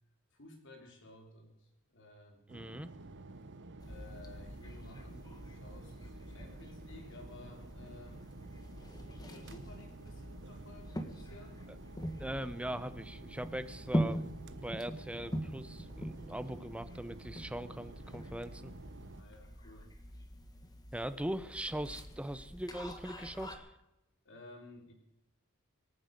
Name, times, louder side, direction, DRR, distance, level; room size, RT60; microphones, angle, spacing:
voice 1, 0.3-2.5 3.8-8.3 8.8-11.8 19.2-19.9 24.2-24.9, left 2 dB, 60° left, 2 dB, 3.5 m, -55 dB
voice 2, 2.5-2.9 12.2-18.7 20.9-23.7, right 1 dB, 5° right, 13 dB, 0.6 m, -40 dB
sound 1, 2.5-19.2, right 2 dB, 55° right, 0.9 m, -51 dB
sound 2, 3.8-23.5, equal, 20° left, 1.6 m, -43 dB
25.0 x 9.4 x 5.3 m, 0.90 s
head